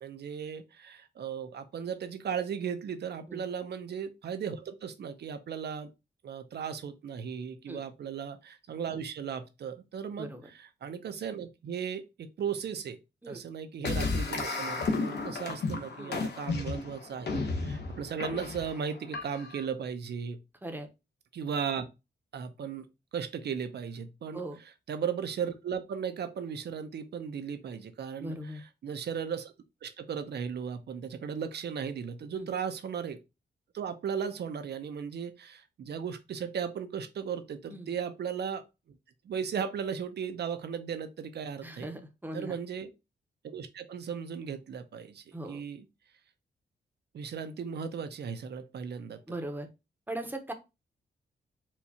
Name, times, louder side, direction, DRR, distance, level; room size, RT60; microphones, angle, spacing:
voice 1, 0.0-5.9 6.2-13.0 13.3-20.4 21.3-21.9 22.3-22.9 23.1-24.4 24.9-29.5 29.8-33.2 33.7-38.6 39.2-41.9 42.3-42.9 43.4-45.9 47.1-49.4, right 7 dB, 65° right, 0.6 m, -36 dB
voice 2, 10.2-10.5 13.2-13.4 16.0-16.2 20.6-20.9 24.3-24.6 28.2-28.6 32.4-32.5 37.7-37.9 41.6-42.6 45.3-45.6 49.3-49.7 50.1-50.5, right 1 dB, 10° right, 0.7 m, -39 dB
sound 1, 13.8-19.6, left 3 dB, 65° left, 0.8 m, -33 dB
4.4 x 2.3 x 2.7 m
cardioid pair, 100°, 18 cm